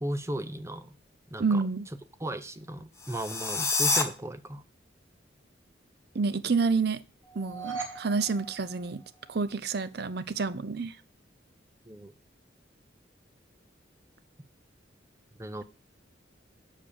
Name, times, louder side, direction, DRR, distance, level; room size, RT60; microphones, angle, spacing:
voice 1, 0.0-0.9 1.3-1.6 2.2-4.6 11.9-12.1 15.4-15.6, right 1 dB, 15° right, 0.6 m, -36 dB
voice 2, 1.4-1.9 6.1-7.0 7.4-9.0 9.3-11.0, right 4 dB, 55° right, 0.6 m, -28 dB
sound 1, 2.9-4.0, left 3 dB, 15° left, 0.9 m, -27 dB
sound 2, 7.2-9.5, right 5 dB, 85° right, 2.2 m, -41 dB
7.3 x 5.3 x 6.9 m
head